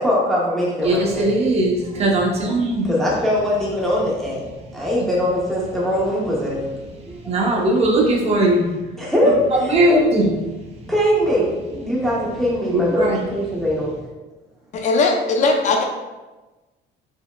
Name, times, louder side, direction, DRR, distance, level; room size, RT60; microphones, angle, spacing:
voice 1, 0.0-1.3 2.9-4.4 4.7-6.8 7.1-7.6 9.0-10.0 10.9-14.1, equal, ahead, -6 dB, 0.7 m, -21 dB
voice 2, 0.8-2.9 7.2-9.0 9.6-10.3 12.7-13.3, right 1 dB, 30° right, -2 dB, 0.8 m, -19 dB
voice 3, 14.7-15.8, left 3 dB, 40° left, 2 dB, 0.6 m, -18 dB
4.6 x 3.3 x 2.2 m, 1.2 s
cardioid pair, 165°, 20 cm